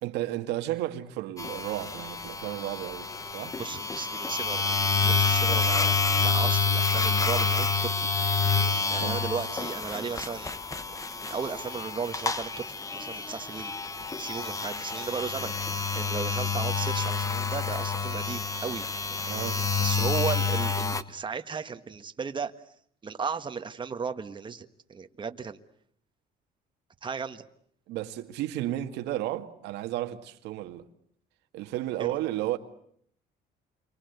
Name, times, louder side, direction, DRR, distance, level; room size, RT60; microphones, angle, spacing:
voice 1, 0.0-3.6 9.0-9.2 19.2-19.6 27.9-30.9 31.5-32.6, right 14 dB, 90° right, 2.0 m, -33 dB
sound 1, 1.4-21.0, left 4 dB, 20° left, 1.3 m, -28 dB
voice 2, 3.6-5.9 6.2-8.1 8.9-10.6 11.2-13.7 14.2-15.5 15.9-18.8 19.8-22.5 23.0-25.6 27.0-27.4 32.0-32.2, right 6 dB, 30° right, 1.6 m, -35 dB
29.0 x 24.0 x 8.2 m
cardioid pair, 110°, 17 cm